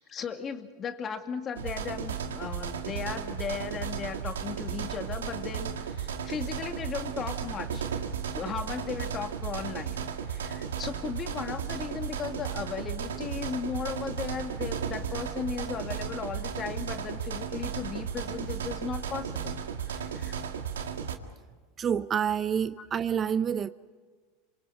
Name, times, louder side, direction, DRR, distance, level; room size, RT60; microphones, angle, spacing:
voice 1, 0.0-7.9 8.3-20.4 22.8-22.9, left 6 dB, 30° left, 2.3 m, -36 dB
sound 1, 1.6-21.2, right 7 dB, 90° right, 1.9 m, -35 dB
voice 2, 21.8-23.7, right 8 dB, 30° right, 0.7 m, -28 dB
27.5 x 25.5 x 4.9 m
hypercardioid pair, 105°, 0 cm